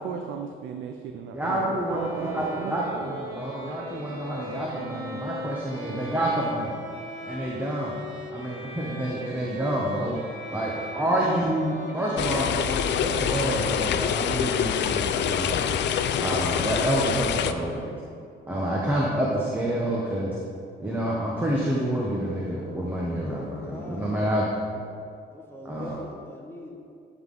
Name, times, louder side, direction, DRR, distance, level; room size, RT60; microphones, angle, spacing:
voice 1, 0.0-3.2, right 6 dB, 75° right, 5 dB, 0.5 m, -36 dB
voice 2, 1.3-6.8 7.3-8.0 8.3-10.2 10.5-15.7 16.2-17.9 18.5-20.4 20.8-24.5 25.6-26.0, right 1 dB, 10° right, -5 dB, 1.0 m, -28 dB
Bowed string instrument, 1.9-16.4, right 1 dB, 45° right, 1.7 m, -39 dB
sound 1, 12.2-17.5, left 9 dB, 65° left, 0.4 m, -26 dB
voice 3, 23.2-24.1 25.2-26.7, left 1 dB, 10° left, -2 dB, 1.4 m, -42 dB
10.5 x 3.9 x 3.9 m, 2.4 s
cardioid pair, 90°, 20 cm